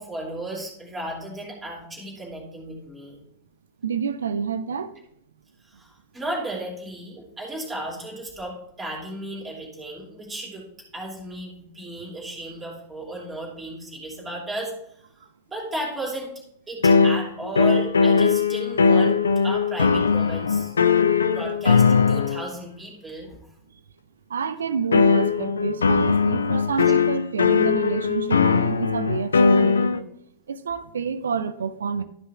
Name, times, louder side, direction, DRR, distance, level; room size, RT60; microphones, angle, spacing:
voice 1, 0.0-3.2 5.6-10.6 10.9-14.7 15.5-16.3 16.7-19.1 19.4-20.7 21.2-23.3, right 1 dB, 15° right, 2.9 m, -34 dB
voice 2, 3.8-4.9 20.9-21.2 24.3-30.1 30.5-32.0, right 6 dB, 70° right, 0.5 m, -28 dB
sound 1, 16.8-22.4 24.9-30.0, left 5 dB, 70° left, 0.4 m, -19 dB
12.5 x 5.5 x 3.5 m
figure-of-eight pair, 90°, 0 cm